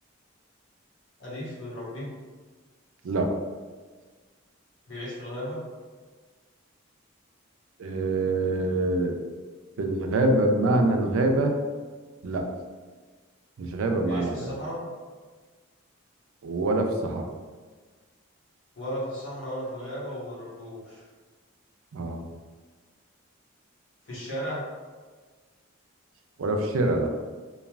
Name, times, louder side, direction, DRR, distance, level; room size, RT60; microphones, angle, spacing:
voice 1, 1.2-2.1 4.9-5.6 14.0-14.8 18.7-21.0 24.0-24.6, equal, 65° left, -7 dB, 1.1 m, -35 dB
voice 2, 7.8-9.2 9.8-11.6 12.2-12.5 13.6-14.5 16.4-17.3 21.9-22.3 26.4-27.1, right 2 dB, 80° right, 3 dB, 0.4 m, -25 dB
3.1 x 2.3 x 2.3 m, 1.4 s
head